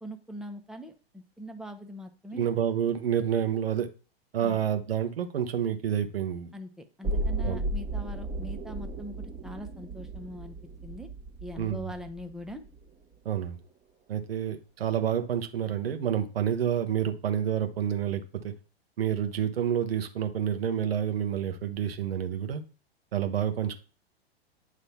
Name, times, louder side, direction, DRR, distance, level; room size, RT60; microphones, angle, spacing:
voice 1, 0.0-2.5 4.4-4.6 6.5-10.6 10.8-11.1 11.4-12.6, equal, ahead, 5 dB, 0.7 m, -42 dB
voice 2, 2.3-3.9 4.3-6.5 7.4-7.6 11.6-11.9 13.2-13.6 14.1-18.5 19.0-22.6 23.1-23.8, right 9 dB, 65° right, 7 dB, 1.2 m, -29 dB
sound 1, 7.0-13.0 13.3-13.4, right 2 dB, 20° right, 1.4 m, -35 dB
9.4 x 3.2 x 5.6 m, 0.37 s
figure-of-eight pair, 105°, 32 cm